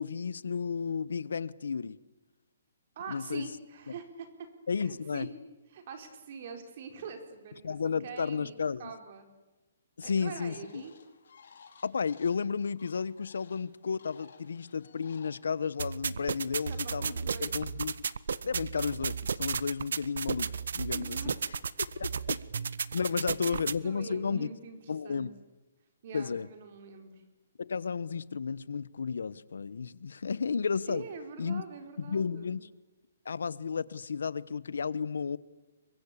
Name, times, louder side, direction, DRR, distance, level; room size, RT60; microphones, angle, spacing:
voice 1, 0.0-2.0 3.1-3.4 4.7-5.3 7.6-8.9 10.0-10.8 11.8-17.1 17.4-17.9 18.4-21.3 21.8-22.4 22.9-24.5 24.9-25.3 26.1-26.5 27.6-31.0 31.4-31.6 32.0-32.7 33.2-35.4, left 5 dB, 85° left, 1.1 m, -33 dB
voice 2, 3.0-4.5 4.8-5.3 5.7-9.2 10.0-10.9 16.7-17.6 20.9-22.0 23.4-24.8 25.0-25.3 26.0-27.2 30.9-32.6, right 6 dB, 40° right, 4.6 m, -44 dB
sound 1, 10.5-15.6, left 6 dB, 65° left, 4.2 m, -58 dB
sound 2, 15.8-23.8, right 6 dB, 75° right, 1.0 m, -34 dB
28.5 x 23.5 x 8.5 m
hypercardioid pair, 170°, 0 cm